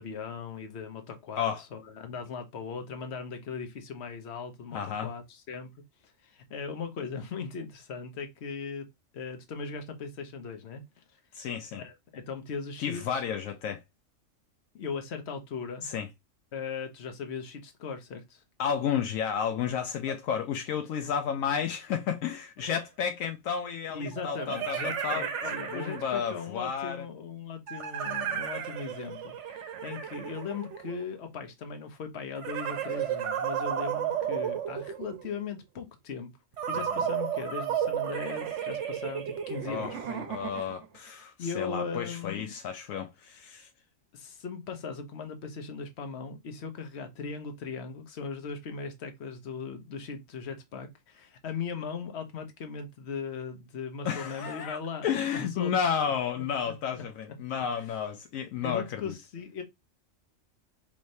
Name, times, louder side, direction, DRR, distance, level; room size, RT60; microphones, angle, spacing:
voice 1, 0.0-5.7 6.2-8.9 9.1-11.0 11.7-13.2 14.7-15.9 16.5-18.4 20.1-20.2 23.9-36.3 36.7-40.3 40.5-40.6 41.4-42.5 44.1-55.1 55.3-55.9 56.6-57.3 57.8-57.9 58.6-59.6, left 5 dB, 55° left, 1.1 m, -38 dB
voice 2, 4.7-5.1 11.3-11.8 12.8-13.8 15.8-16.1 18.6-25.3 25.7-27.0 39.7-39.9 40.3-43.7 54.0-59.2, left 7 dB, 80° left, 1.0 m, -32 dB
sound 1, 22.6-22.7 24.1-26.4 27.7-31.1 32.4-35.4 36.6-40.9, right 8 dB, 65° right, 0.9 m, -33 dB
4.7 x 3.2 x 2.6 m
omnidirectional pair, 1.4 m